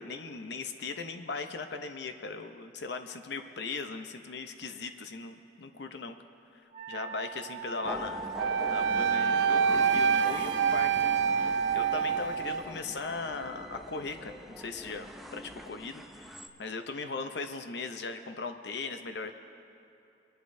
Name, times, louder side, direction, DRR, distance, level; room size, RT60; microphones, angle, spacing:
voice 1, 0.0-6.2 6.9-8.3 8.7-19.3, left 4 dB, 70° left, 7 dB, 0.7 m, -39 dB
Wind instrument woodwind instrument, 6.7-12.3, right 3 dB, 35° right, 1.5 m, -40 dB
sound 1, 7.8-16.5, equal, ahead, 0.5 m, -43 dB
Wind instrument woodwind instrument 2, 8.4-12.6, right 7 dB, 80° right, 0.4 m, -26 dB
25.0 x 11.5 x 2.7 m, 2.8 s
head